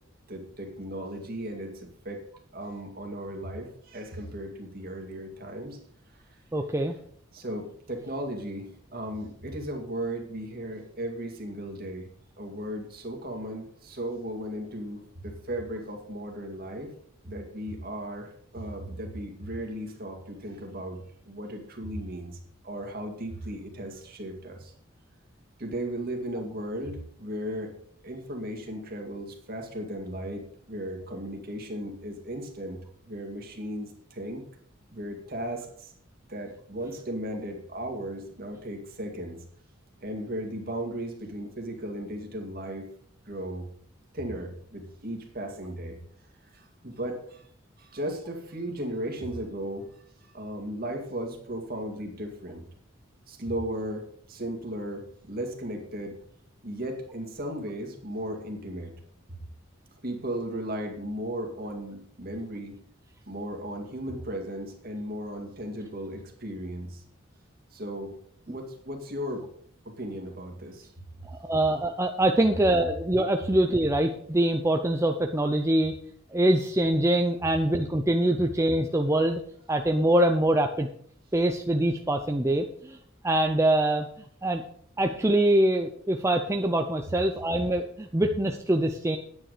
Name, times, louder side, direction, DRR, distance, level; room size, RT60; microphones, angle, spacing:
voice 1, 0.3-2.2 2.5-5.8 7.3-12.1 12.4-16.9 17.2-21.0 21.3-22.4 22.6-24.7 25.6-27.8 28.0-34.4 34.9-35.9 36.3-39.4 40.0-42.9 43.3-43.7 44.1-46.0 46.5-47.4 47.8-49.9 50.3-52.6 53.3-56.2 56.6-58.9 60.0-62.8 63.3-67.0 67.7-68.1 68.5-69.5 69.8-70.9, right 1 dB, 45° right, 3 dB, 2.1 m, -36 dB
voice 2, 6.5-6.9 71.3-75.9 76.3-79.4 79.7-80.9 81.3-83.0 83.2-84.1 84.4-84.6 85.0-89.2, right 1 dB, 15° right, 4 dB, 0.6 m, -24 dB
9.6 x 8.9 x 5.0 m, 0.62 s
head